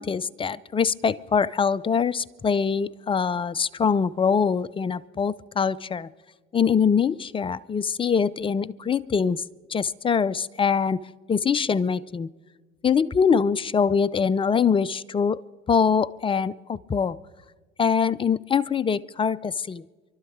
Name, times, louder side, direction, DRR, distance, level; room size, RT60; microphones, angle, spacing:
voice 1, 0.0-6.1 6.5-9.4 9.7-11.0 11.3-12.3 12.8-15.4 15.7-17.2 17.8-19.8, left 6 dB, 15° left, 21 dB, 0.4 m, -23 dB
27.5 x 12.0 x 3.6 m, 1.3 s
hypercardioid pair, 75°, 32 cm